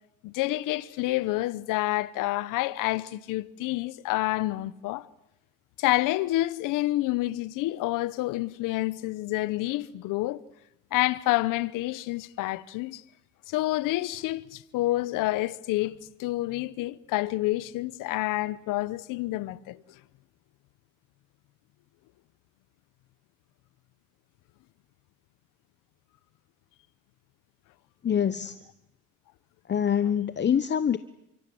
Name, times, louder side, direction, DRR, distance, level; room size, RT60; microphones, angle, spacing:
voice 1, 0.2-5.1 5.8-10.4 10.9-13.0 13.5-19.8, left 17 dB, 75° left, 1.0 m, -28 dB
voice 2, 28.0-28.6 29.6-31.0, left 8 dB, 35° left, 1.0 m, -25 dB
30.0 x 25.0 x 7.9 m
cardioid pair, 100°, 32 cm